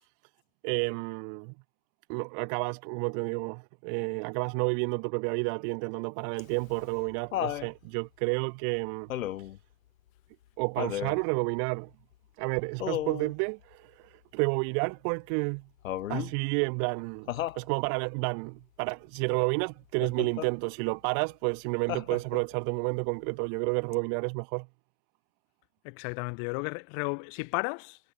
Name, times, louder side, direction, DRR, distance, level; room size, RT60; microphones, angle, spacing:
voice 1, 0.6-1.5 2.1-9.1 9.4-9.5 10.6-11.9 12.4-15.6 16.1-24.7, right 40 dB or more, 15° right, 0.5 m, -30 dB
Laughter, 6.4-7.7 9.1-9.6 10.8-11.2 12.8-13.3 15.8-16.3 17.3-17.6 20.0-20.5 21.9-22.5 23.9-24.0, left 12 dB, 65° left, 2.3 m, -34 dB
voice 2, 25.8-28.0, left 40 dB or more, 30° left, 1.2 m, -33 dB
hypercardioid pair, 155°, 43 cm